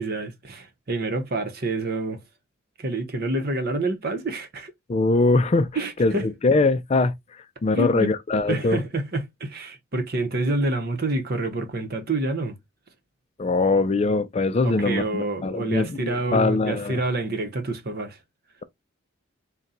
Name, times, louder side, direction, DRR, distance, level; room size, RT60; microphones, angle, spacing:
voice 1, 0.0-2.2 2.8-4.7 5.8-6.3 7.7-8.1 8.5-12.6 14.6-18.2, right 2 dB, 50° right, 0.8 m, -27 dB
voice 2, 4.9-5.7 6.0-8.8 13.4-17.0, left 3 dB, 30° left, 0.4 m, -22 dB
4.1 x 2.2 x 3.7 m
head